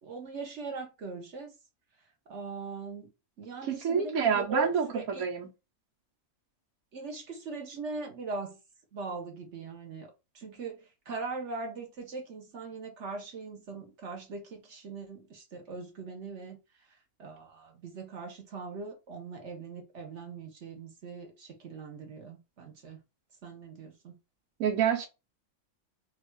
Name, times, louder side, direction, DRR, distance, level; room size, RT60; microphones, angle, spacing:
voice 1, 0.0-1.5 2.3-3.1 3.4-5.3 6.9-8.6 8.9-16.6 17.2-23.0 23.4-24.1, right 3 dB, 55° right, 1.3 m, -40 dB
voice 2, 3.7-5.5 24.6-25.1, right 7 dB, 80° right, 1.3 m, -28 dB
3.5 x 2.4 x 4.5 m
omnidirectional pair, 1.5 m